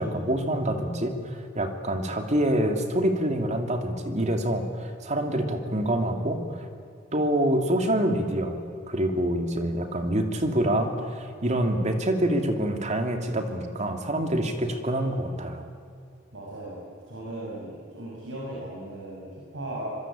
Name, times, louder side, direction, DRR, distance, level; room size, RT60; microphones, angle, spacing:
voice 1, 0.0-6.6 7.1-15.7, right 1 dB, 35° right, 5 dB, 2.7 m, -26 dB
voice 2, 16.3-19.9, right 1 dB, 70° right, -4 dB, 6.5 m, -37 dB
25.5 x 22.5 x 8.9 m, 2.5 s
head